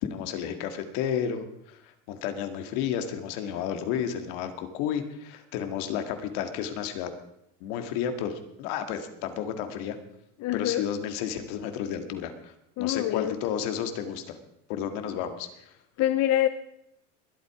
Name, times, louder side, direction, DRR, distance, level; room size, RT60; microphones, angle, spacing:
voice 1, 0.0-7.1 7.6-10.0 10.5-14.4 14.7-15.5, left 8 dB, 65° left, 2.1 m, -32 dB
voice 2, 10.4-10.9 12.8-13.4 16.0-16.5, left 13 dB, 45° left, 0.8 m, -25 dB
22.0 x 8.5 x 4.9 m
supercardioid pair, 100°, 37 cm